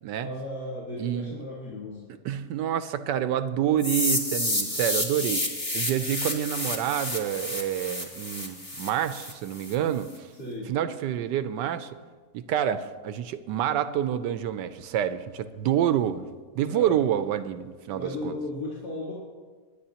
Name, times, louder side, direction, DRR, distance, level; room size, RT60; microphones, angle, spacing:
voice 1, 0.2-2.0 10.4-10.7 16.7-17.0 17.9-19.1, left 1 dB, 60° left, -7 dB, 3.1 m, -35 dB
voice 2, 1.0-1.4 2.2-5.5 5.7-10.3 10.7-11.9 12.3-16.3 16.5-18.3, right 10 dB, 80° right, 12 dB, 1.2 m, -28 dB
sound 1, 3.8-9.7, left 1 dB, 20° left, 1.8 m, -30 dB
21.5 x 10.0 x 2.9 m, 1.5 s
omnidirectional pair, 1.9 m